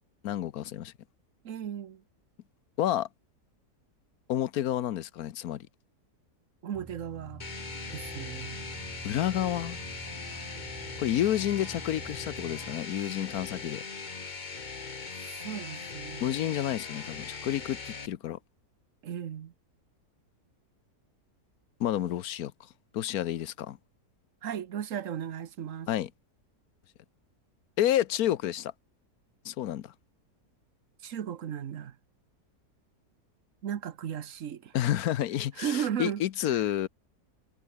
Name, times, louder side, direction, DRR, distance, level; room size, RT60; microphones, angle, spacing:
voice 1, 0.2-0.9 2.8-3.1 4.3-5.7 9.0-9.8 11.0-13.8 16.2-18.4 21.8-22.5 22.9-23.8 25.9-26.1 27.8-28.7 29.4-29.9 34.7-36.9, left 12 dB, 70° left, 1.2 m, -30 dB
voice 2, 1.4-2.0 6.6-7.4 7.9-8.7 15.2-16.3 19.0-19.5 24.4-25.9 31.0-32.0 33.6-34.7 35.6-36.2 36.5-36.7, right 9 dB, 55° right, 1.3 m, -36 dB
sound 1, 6.7-12.8, right 3 dB, 20° right, 0.6 m, -46 dB
sound 2, 7.4-18.1, left 4 dB, 30° left, 1.3 m, -40 dB
omnidirectional pair, 1.7 m